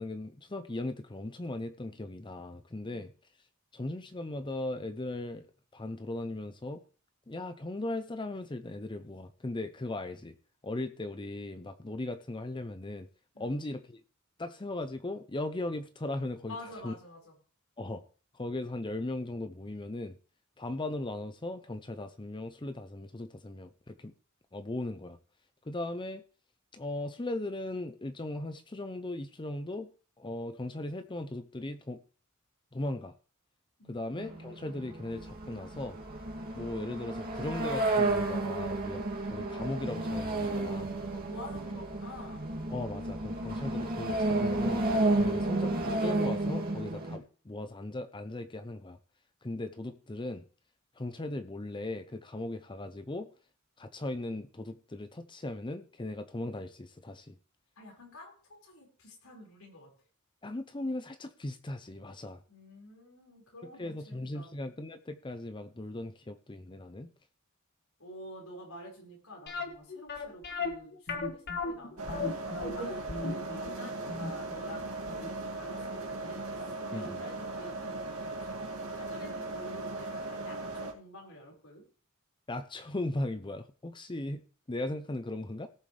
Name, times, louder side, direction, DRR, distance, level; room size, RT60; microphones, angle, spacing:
voice 1, 0.0-3.1 3.7-5.5 5.7-6.8 7.3-10.3 10.6-13.1 13.4-14.0 14.4-16.6 16.8-16.9 17.8-18.0 18.3-20.1 20.6-24.1 24.5-25.2 25.7-26.2 26.7-29.9 30.2-32.0 32.7-33.1 33.9-36.0 36.5-39.0 39.3-40.9 42.7-44.8 45.1-49.0 49.4-50.4 51.0-53.3 53.8-57.3 60.4-62.4 63.8-67.1 76.9-77.2 82.5-84.4 84.7-85.7, left 2 dB, 20° left, 9 dB, 0.6 m, -38 dB
voice 2, 16.5-17.3 33.8-34.1 41.3-42.5 57.8-59.9 62.5-64.5 68.0-72.2 72.7-78.0 78.4-81.8, left 1 dB, 80° left, -1 dB, 5.2 m, -49 dB
sound 1, 34.2-47.2, right 2 dB, 45° right, 2.6 m, -32 dB
sound 2, 69.5-76.3 76.6-76.7 77.3-77.4 77.7-77.8, left 3 dB, 50° left, 1.6 m, -37 dB
sound 3, 72.0-80.9, right 2 dB, 85° right, 2.2 m, -38 dB
18.0 x 7.0 x 3.4 m, 0.40 s
head